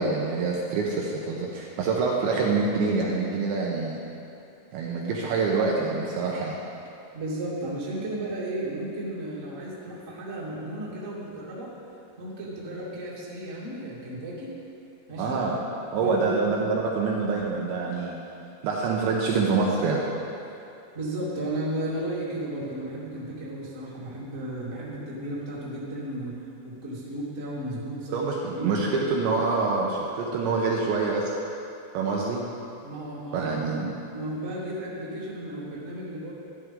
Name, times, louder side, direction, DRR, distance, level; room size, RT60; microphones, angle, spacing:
voice 1, 0.0-4.0 4.7-6.6 15.2-15.6 15.9-18.2 18.6-20.1 28.1-31.3 31.9-32.4 33.3-34.0, right 4 dB, 75° right, -3 dB, 2.9 m, -26 dB
voice 2, 7.1-11.7 12.2-14.5 15.1-15.4 15.9-16.4 20.9-26.4 26.6-28.2 28.5-28.9 32.8-33.5 34.1-36.3, right 1 dB, 25° right, -8 dB, 1.8 m, -34 dB
14.0 x 12.0 x 3.7 m, 2.7 s
omnidirectional pair, 5.8 m